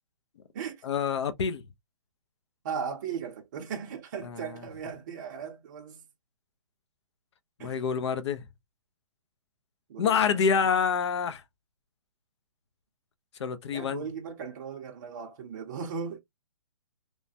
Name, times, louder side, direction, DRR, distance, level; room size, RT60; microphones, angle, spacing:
voice 1, 0.8-1.6 4.2-4.5 7.6-8.4 10.0-11.4 13.4-14.0, left 6 dB, 55° left, 0.6 m, -27 dB
voice 2, 2.6-6.0 7.6-7.8 9.9-10.7 13.7-16.2, right 6 dB, 35° right, 0.6 m, -37 dB
3.1 x 2.1 x 2.6 m
hypercardioid pair, 165°, 17 cm